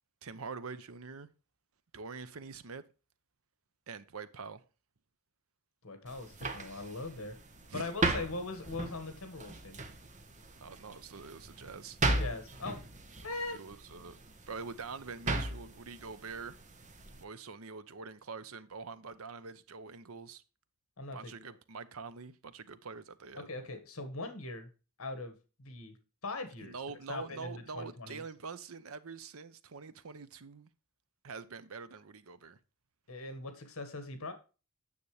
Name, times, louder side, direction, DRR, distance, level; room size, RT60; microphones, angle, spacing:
voice 1, 0.2-1.3 1.9-2.8 3.9-4.6 7.7-7.9 10.6-12.0 13.5-14.2 14.5-16.6 17.2-20.4 21.1-23.5 26.6-30.7 31.2-32.6, right 5 dB, 75° right, 0.7 m, -45 dB
voice 2, 5.8-7.3 7.7-9.8 12.2-12.8 13.2-13.6 21.0-21.5 23.4-24.7 25.0-25.3 25.6-25.9 26.2-26.7 27.1-28.2 33.1-34.3, left 3 dB, 70° left, 1.6 m, -41 dB
sound 1, 6.1-17.2, right 2 dB, 35° right, 1.1 m, -38 dB
9.4 x 6.9 x 3.2 m
head